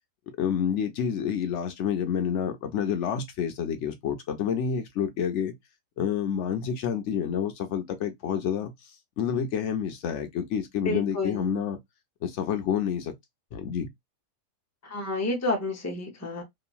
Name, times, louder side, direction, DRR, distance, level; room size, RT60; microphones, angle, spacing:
voice 1, 0.4-5.5 6.0-8.7 9.2-11.8 12.2-13.1 13.5-13.9, left 8 dB, 65° left, 0.8 m, -28 dB
voice 2, 10.9-11.6 14.8-16.4, left 2 dB, 20° left, 0.4 m, -30 dB
2.9 x 2.4 x 2.2 m
omnidirectional pair, 1.5 m